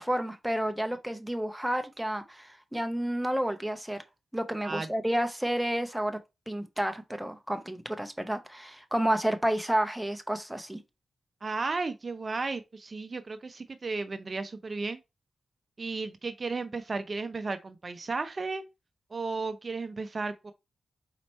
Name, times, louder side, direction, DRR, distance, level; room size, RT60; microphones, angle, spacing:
voice 1, 0.0-4.0 4.3-6.2 6.5-10.8, right 1 dB, 5° right, 0.8 m, -30 dB
voice 2, 11.4-15.0 15.8-18.6 19.1-20.5, right 3 dB, 45° right, 0.5 m, -34 dB
4.3 x 3.0 x 4.2 m
cardioid pair, 70°, 0 cm